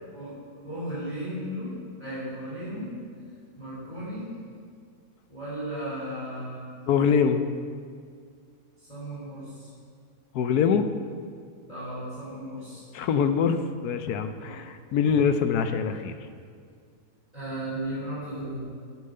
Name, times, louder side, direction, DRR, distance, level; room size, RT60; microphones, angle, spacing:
voice 1, 0.1-1.7 2.0-2.9 3.6-4.3 5.3-6.7 8.9-9.7 11.7-12.8 14.4-14.6 17.3-18.6, right 1 dB, 25° left, -11 dB, 3.3 m, -35 dB
voice 2, 6.9-7.5 10.3-10.9 12.9-16.2, left 6 dB, 80° left, 9 dB, 1.2 m, -24 dB
9.1 x 7.8 x 6.5 m, 2.1 s
omnidirectional pair, 1.6 m